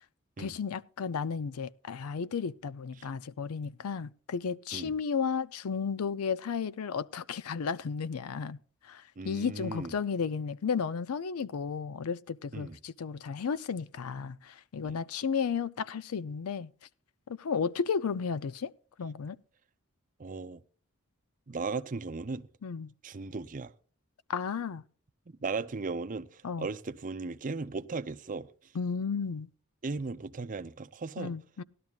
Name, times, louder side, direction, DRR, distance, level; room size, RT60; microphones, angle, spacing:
voice 1, 0.4-8.6 8.8-16.7 17.4-18.7 19.0-19.4 22.6-22.9 24.3-24.8 26.4-26.7 28.7-29.5 31.2-31.6, left 6 dB, 85° left, 0.5 m, -33 dB
voice 2, 9.2-9.9 12.5-12.8 14.8-15.0 20.2-20.6 21.5-22.5 23.0-23.7 25.4-28.5 29.8-31.3, right 4 dB, 40° right, 0.6 m, -37 dB
18.5 x 12.0 x 2.4 m
head